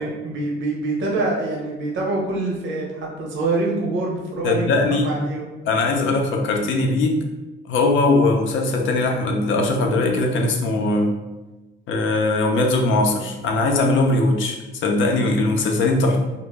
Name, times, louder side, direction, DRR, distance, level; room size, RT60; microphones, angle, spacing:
voice 1, 0.0-4.8 5.0-5.5, right 2 dB, 75° right, -1 dB, 0.7 m, -25 dB
voice 2, 4.4-5.1 5.6-7.2 7.7-11.1 11.9-16.2, left 2 dB, 75° left, 3 dB, 0.5 m, -20 dB
2.0 x 2.0 x 3.3 m, 1.1 s
cardioid pair, 90°, 20 cm